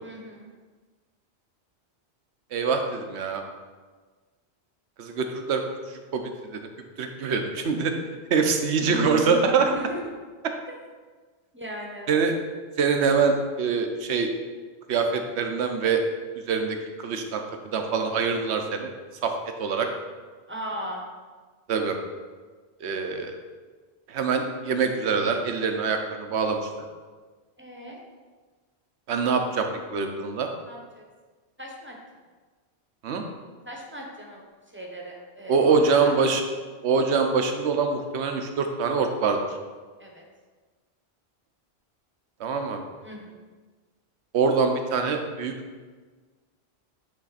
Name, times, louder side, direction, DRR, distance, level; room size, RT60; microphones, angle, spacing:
voice 1, 0.0-0.5 8.8-10.0 11.5-12.2 20.5-21.0 27.6-28.0 30.6-31.0 31.6-32.0 33.6-34.4 34.7-36.1 40.0-40.2 43.0-43.4, right 1 dB, 10° right, -1 dB, 0.8 m, -36 dB
voice 2, 2.5-3.4 5.0-5.6 6.1-6.6 7.0-7.9 8.3-9.7 12.1-12.3 12.8-14.3 14.9-16.0 16.5-17.4 17.7-18.9 19.2-19.3 19.6-19.9 21.7-22.0 22.8-23.4 24.1-26.6 29.1-30.5 33.0-33.2 35.5-36.4 36.8-39.4 42.4-42.8 44.3-45.5, right 5 dB, 80° right, 5 dB, 1.0 m, -24 dB
8.7 x 3.4 x 4.1 m, 1.4 s
omnidirectional pair, 1.1 m